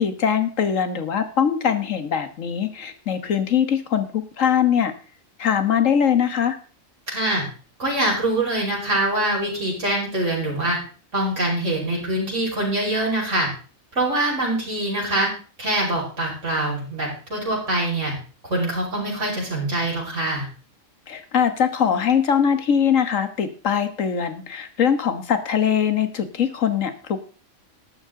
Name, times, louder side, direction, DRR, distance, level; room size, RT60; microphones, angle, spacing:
voice 1, 0.0-4.9 5.4-6.6 21.1-27.3, left 8 dB, 70° left, 10 dB, 1.7 m, -22 dB
voice 2, 7.1-7.4 7.8-10.8 11.1-13.5 13.9-15.3 15.6-18.1 18.5-20.5, right 1 dB, 65° right, -3 dB, 5.8 m, -24 dB
13.5 x 11.5 x 3.8 m, 0.39 s
omnidirectional pair, 1.4 m